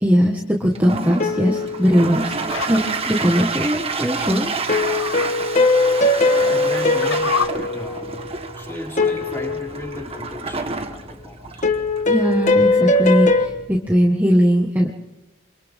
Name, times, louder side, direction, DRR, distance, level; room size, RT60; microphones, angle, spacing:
voice 1, 0.0-2.8 3.1-4.5 12.1-14.9, equal, 10° right, -1 dB, 1.7 m, -19 dB
Toilet flush, 0.6-13.8, right 3 dB, 30° right, 1.5 m, -29 dB
sound 1, 1.2-2.7 4.7-8.3 9.0-10.5 11.6-13.5, left 2 dB, 40° left, 1.5 m, -20 dB
sound 2, 2.3-3.7 4.6-5.3 5.7-5.8 6.5-7.5, left 6 dB, 75° left, 1.3 m, -28 dB
voice 2, 6.2-8.2 8.5-11.7, left 1 dB, 10° left, -2 dB, 5.5 m, -35 dB
30.0 x 26.0 x 3.8 m, 0.99 s
head